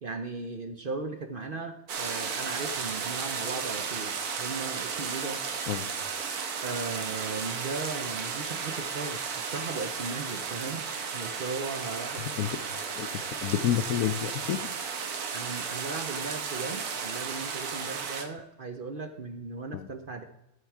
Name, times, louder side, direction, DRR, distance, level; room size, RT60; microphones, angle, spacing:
voice 1, 0.0-5.4 6.6-10.8 11.1-12.3 15.3-20.2, right 4 dB, 50° right, 6 dB, 0.7 m, -37 dB
sound 1, 1.9-18.2, right 6 dB, 90° right, 1.5 m, -34 dB
voice 2, 13.0-14.6 19.7-19.9, left 11 dB, 75° left, 13 dB, 1.0 m, -29 dB
13.0 x 4.7 x 4.6 m, 0.87 s
omnidirectional pair, 1.6 m